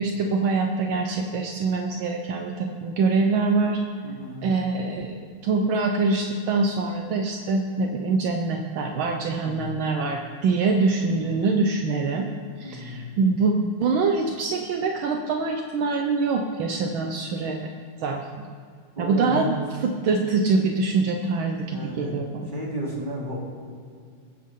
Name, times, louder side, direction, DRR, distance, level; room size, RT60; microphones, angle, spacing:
voice 1, 0.0-3.8 4.4-12.3 12.6-13.5 13.8-17.6 18.0-18.4 19.0-19.5 19.8-22.5, right 4 dB, 75° right, 3 dB, 1.6 m, -24 dB
voice 2, 4.0-4.5 9.4-9.7 11.1-11.4 12.6-13.1 18.9-19.7 21.7-22.2 22.5-23.4, right 1 dB, 20° right, -5 dB, 3.4 m, -33 dB
21.5 x 9.5 x 3.8 m, 2.2 s
omnidirectional pair, 2.3 m